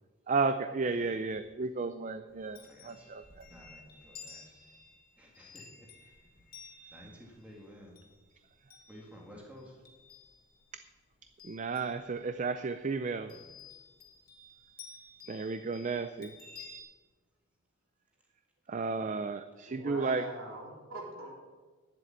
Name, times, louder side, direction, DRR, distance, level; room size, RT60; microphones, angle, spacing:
voice 1, 0.3-3.5 11.4-13.3 15.3-16.3 18.7-20.2, right 4 dB, 35° right, 10 dB, 0.4 m, -33 dB
Chime, 2.3-10.8 11.1-12.5 13.3-16.8, left 4 dB, 40° left, 1.7 m, -54 dB
voice 2, 2.5-4.8 5.2-6.6 6.9-8.0 8.9-9.8 13.2-13.6 16.2-16.3, equal, 5° right, -2 dB, 1.8 m, -54 dB
voice 3, 19.7-21.4, right 2 dB, 65° right, -2 dB, 3.7 m, -43 dB
10.0 x 7.7 x 8.7 m, 1.4 s
head